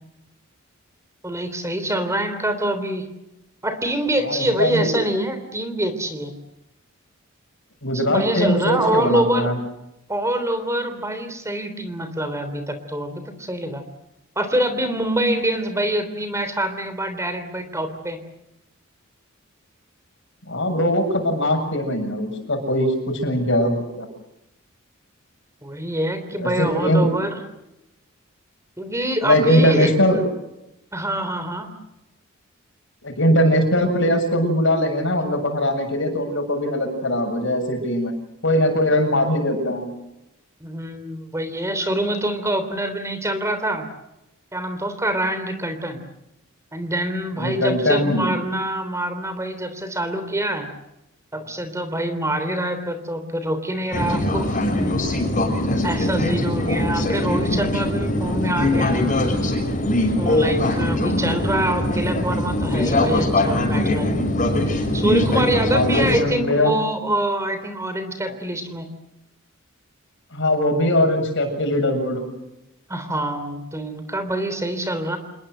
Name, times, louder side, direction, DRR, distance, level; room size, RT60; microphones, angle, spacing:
voice 1, 1.2-3.1 3.6-6.3 7.9-9.5 10.1-13.8 14.3-18.2 25.6-27.4 28.8-30.2 30.9-31.7 40.6-43.9 44.5-46.0 46.7-50.7 51.3-54.5 55.8-59.0 60.2-64.1 64.9-68.9 72.9-75.2, right 1 dB, 15° right, 9 dB, 3.3 m, -25 dB
voice 2, 4.2-4.9 7.8-9.6 20.5-24.1 26.3-27.1 29.2-30.2 33.0-38.1 38.4-39.9 47.4-48.2 55.6-56.0 65.7-66.7 70.3-72.3, left 1 dB, 60° left, 6 dB, 7.4 m, -21 dB
sound 1, 53.9-66.2, left 1 dB, 40° left, 6.6 m, -22 dB
28.5 x 20.5 x 8.0 m, 0.89 s
head